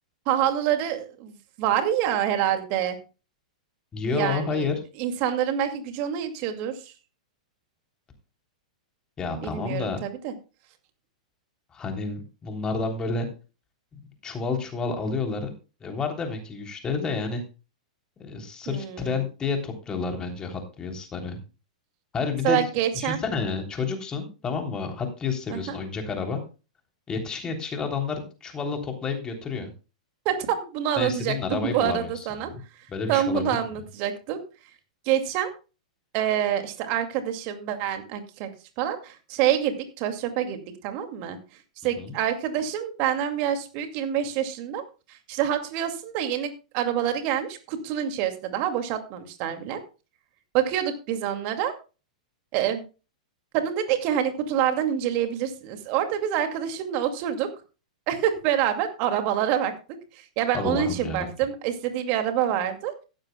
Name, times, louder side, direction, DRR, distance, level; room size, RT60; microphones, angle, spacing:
voice 1, 0.3-3.0 4.1-4.7 5.0-6.9 9.4-10.3 18.7-19.2 22.4-23.2 25.5-25.8 30.2-32.5 33.1-34.4 35.1-35.5 36.1-38.5 38.8-41.4 41.8-44.8 45.1-49.8 50.5-51.7 52.5-52.8 53.5-57.5 58.1-59.7 60.1-62.9, right 10 dB, 45° right, 7 dB, 2.3 m, -26 dB
voice 2, 3.9-4.7 9.2-10.0 11.7-13.3 14.2-15.5 15.8-17.4 18.2-21.4 22.1-22.6 22.9-26.4 27.1-29.7 31.0-32.1 32.4-32.6 32.9-33.6 42.0-42.1 60.5-61.3, left 4 dB, 20° left, 3 dB, 3.4 m, -30 dB
15.5 x 13.0 x 2.3 m, 0.32 s
figure-of-eight pair, 100°, 4 cm